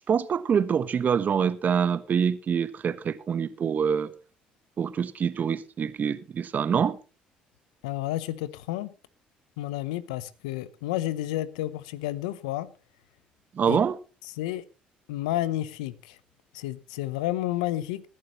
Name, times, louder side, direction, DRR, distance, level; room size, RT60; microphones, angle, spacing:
voice 1, 0.1-4.1 4.8-7.0 13.5-14.0, right 7 dB, 45° right, 1.2 m, -25 dB
voice 2, 7.8-8.9 9.6-12.7 13.7-13.8 14.4-14.6 15.1-16.1 16.5-18.0, left 15 dB, 85° left, 0.8 m, -31 dB
20.0 x 11.5 x 3.0 m
hypercardioid pair, 55°, 4 cm